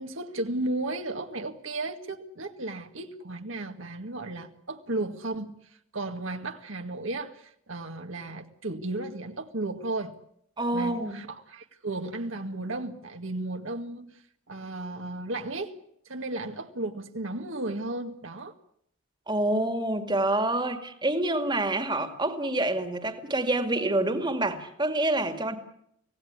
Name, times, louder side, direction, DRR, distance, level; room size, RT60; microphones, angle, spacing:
voice 1, 0.0-10.1 10.7-14.2 14.5-15.7 16.1-18.5, right 2 dB, 65° right, 1.9 m, -34 dB
voice 2, 10.6-11.2 19.3-25.6, right 2 dB, 20° right, 2.2 m, -27 dB
25.5 x 17.5 x 9.6 m
head